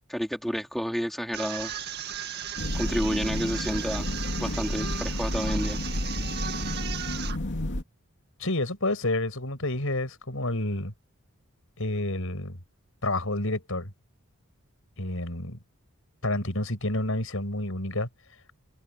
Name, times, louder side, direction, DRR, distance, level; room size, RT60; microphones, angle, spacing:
voice 1, 0.1-1.9 2.7-4.1 4.4-5.8, equal, ahead, 4.1 m, -30 dB
sound 1, 1.3-7.4, right 8 dB, 50° right, 1.9 m, -36 dB
sound 2, 2.6-7.8, left 1 dB, 55° left, 2.8 m, -31 dB
voice 2, 8.4-10.9 11.8-12.6 13.0-13.9 15.0-15.6 16.2-18.1, left 1 dB, 70° left, 6.4 m, -29 dB
head